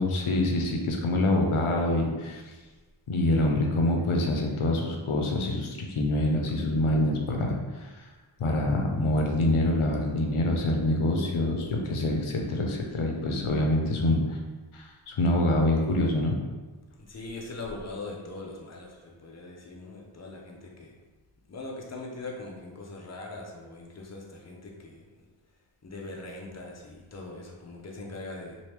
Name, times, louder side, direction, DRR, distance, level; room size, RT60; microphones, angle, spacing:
voice 1, 0.0-2.4 3.1-8.1 8.4-14.4 14.7-16.4, left 1 dB, 75° left, 1 dB, 0.7 m, -26 dB
voice 2, 17.0-21.0 21.5-25.3 25.8-28.6, left 2 dB, 35° left, -1 dB, 0.7 m, -41 dB
2.9 x 2.6 x 3.3 m, 1.3 s
cardioid pair, 40°, 50 cm